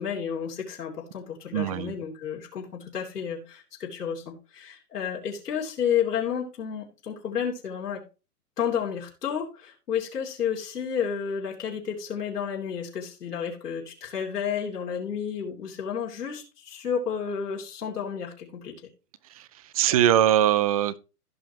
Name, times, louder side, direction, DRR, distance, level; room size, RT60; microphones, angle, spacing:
voice 1, 0.0-8.0 8.6-18.7, left 8 dB, 85° left, 3.0 m, -31 dB
voice 2, 1.5-1.9 19.3-19.5 19.7-21.0, right 11 dB, 25° right, 0.4 m, -21 dB
16.0 x 5.7 x 2.9 m
hypercardioid pair, 130°, 46 cm